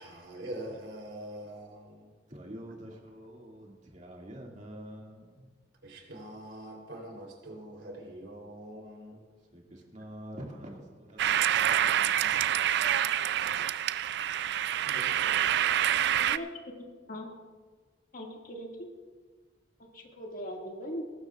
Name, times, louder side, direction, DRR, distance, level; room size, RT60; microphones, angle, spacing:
voice 1, 0.0-2.1 5.8-9.2 14.8-15.2, right 1 dB, 80° right, 0 dB, 3.3 m, -44 dB
voice 2, 2.3-5.5 9.5-12.3, equal, 40° right, -1 dB, 2.2 m, -46 dB
sound 1, 11.2-16.4, right 10 dB, 65° right, 0.4 m, -27 dB
voice 3, 16.2-16.5 17.1-17.3 18.1-18.7 19.8-21.0, equal, 50° left, 0 dB, 2.0 m, -39 dB
19.0 x 15.0 x 2.4 m, 1.4 s
head